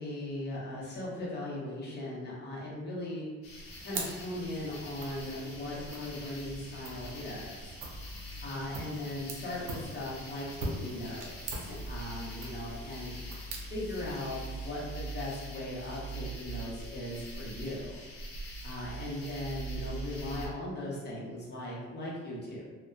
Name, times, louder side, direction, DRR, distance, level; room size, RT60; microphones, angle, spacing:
voice 1, 0.0-3.3 3.8-7.7 8.4-13.1 13.7-18.0 18.6-22.6, left 1 dB, 30° left, -5 dB, 0.8 m, -38 dB
sound 1, 3.4-20.5, right 1 dB, 75° left, 0.7 m, -43 dB
sound 2, 3.6-15.2, right 2 dB, 65° right, 0.6 m, -44 dB
2.6 x 2.1 x 2.3 m, 1.3 s
cardioid pair, 110°, 34 cm